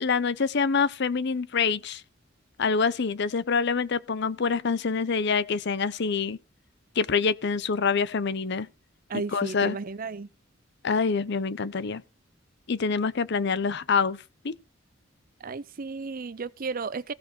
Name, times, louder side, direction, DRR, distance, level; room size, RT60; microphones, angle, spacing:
voice 1, 0.0-2.0 2.6-6.4 7.0-8.7 9.1-9.8 10.8-12.0 12.7-14.6, left 5 dB, 60° left, 0.7 m, -26 dB
voice 2, 9.1-10.3 15.4-17.1, right 4 dB, 45° right, 0.6 m, -34 dB
15.5 x 5.2 x 5.9 m
head